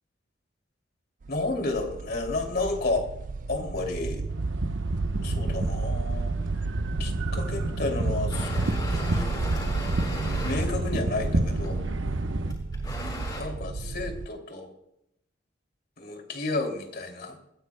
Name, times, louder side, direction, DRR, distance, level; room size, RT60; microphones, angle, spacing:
sound 1, 1.2-14.3, right 4 dB, 45° right, 0.4 m, -33 dB
voice 1, 1.3-3.1 3.5-4.3 5.2-6.3 7.0-9.3 10.4-11.8 13.3-14.7 16.0-17.4, left 2 dB, 55° left, 3 dB, 2.9 m, -31 dB
sound 2, 4.3-12.5, right 1 dB, 85° right, 1.1 m, -30 dB
sound 3, 8.3-10.7 11.6-11.9 12.5-13.4, left 1 dB, 25° left, 6.3 m, -37 dB
21.5 x 15.5 x 2.3 m, 0.80 s
head